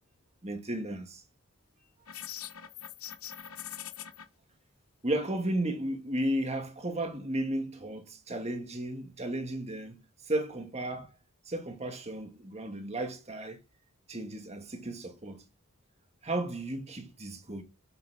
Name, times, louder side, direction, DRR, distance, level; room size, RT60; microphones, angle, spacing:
voice 1, 0.4-1.2 5.0-10.0 10.2-11.1 11.5-13.6 14.1-15.4 16.2-17.6, right 1 dB, 30° right, 1.7 m, -34 dB
sound 1, 2.1-4.2, left 10 dB, 75° left, 1.1 m, -42 dB
8.1 x 7.0 x 5.9 m
head